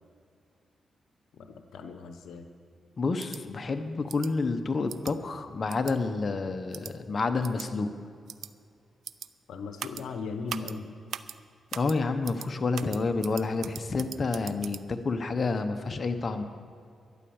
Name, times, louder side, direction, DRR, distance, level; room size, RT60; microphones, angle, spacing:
voice 1, 1.3-2.5 9.5-10.9, left 4 dB, 85° left, 7 dB, 0.9 m, -38 dB
voice 2, 3.0-7.9 11.7-16.4, left 3 dB, 45° left, 7 dB, 1.0 m, -29 dB
sound 1, 3.2-3.4 4.1-4.3 4.9-5.1 5.7-5.9 6.7-6.9 7.4-7.7 8.3-8.5 9.0-9.3 9.8-10.0 10.5-10.7 11.1-11.4 11.7-12.0 12.2-12.5 12.7-14.8, right 9 dB, 80° right, 0.4 m, -39 dB
12.0 x 9.8 x 7.2 m, 2.3 s
cardioid pair, 65°, 0 cm